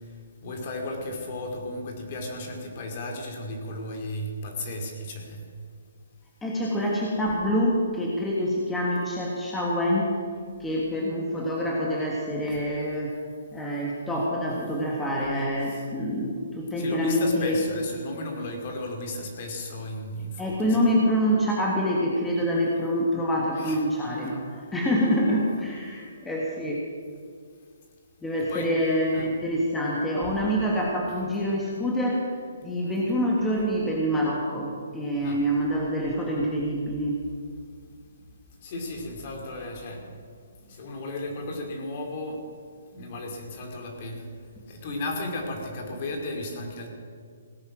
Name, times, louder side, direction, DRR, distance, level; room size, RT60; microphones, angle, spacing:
voice 1, 0.4-5.4 12.5-12.6 15.7-15.9 16.8-20.9 23.5-23.8 28.4-28.7 29.1-29.3 35.2-35.4 38.6-40.1 40.7-42.4 42.9-44.3 44.7-46.9, left 1 dB, 40° left, 2 dB, 2.7 m, -34 dB
voice 2, 6.4-10.2 10.6-13.2 13.5-17.6 20.4-26.8 28.2-32.3 32.6-37.2, equal, 5° left, -3 dB, 1.5 m, -26 dB
17.0 x 9.6 x 6.2 m, 2.1 s
hypercardioid pair, 160°, 0 cm